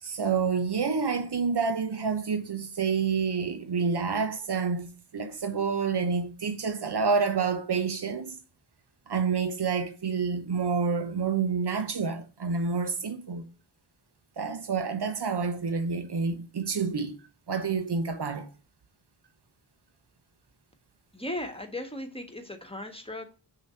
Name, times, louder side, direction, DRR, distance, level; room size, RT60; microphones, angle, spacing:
voice 1, 0.0-8.4 9.1-13.4 14.4-17.2 17.5-18.5, right 5 dB, 65° right, 0.9 m, -28 dB
voice 2, 21.1-23.4, left 1 dB, 15° left, 1.3 m, -37 dB
6.1 x 2.9 x 5.5 m
cardioid pair, 45°, 43 cm